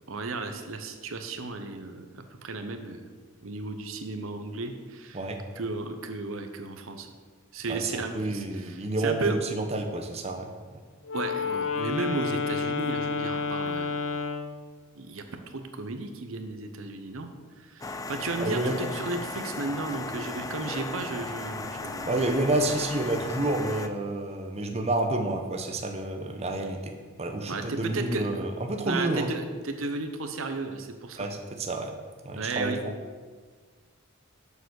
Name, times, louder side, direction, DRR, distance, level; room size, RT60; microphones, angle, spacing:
voice 1, 0.1-3.0 3.4-5.2 5.6-7.1 7.5-9.4 11.1-14.1 14.9-17.3 17.6-22.1 27.5-28.2 28.9-31.3 32.3-32.8, right 3 dB, 75° right, 6 dB, 0.8 m, -34 dB
voice 2, 7.7-10.5 18.4-18.7 22.0-29.3 31.2-31.9 32.2-32.7, right 2 dB, 30° right, 3 dB, 0.9 m, -29 dB
Wind instrument woodwind instrument, 11.0-14.6, left 4 dB, 65° left, 0.8 m, -30 dB
sound 1, 17.8-23.9, left 3 dB, 15° left, 0.4 m, -36 dB
7.1 x 6.8 x 6.4 m, 1.5 s
head